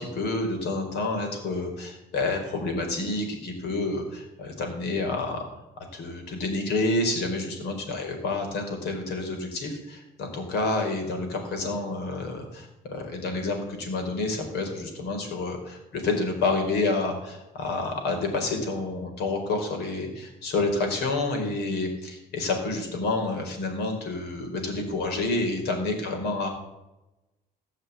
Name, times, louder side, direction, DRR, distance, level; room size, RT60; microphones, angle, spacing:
voice 1, 0.0-5.4 5.9-26.5, left 2 dB, 75° left, 3 dB, 4.7 m, -29 dB
17.5 x 6.6 x 8.4 m, 0.99 s
cardioid pair, 110°, 17 cm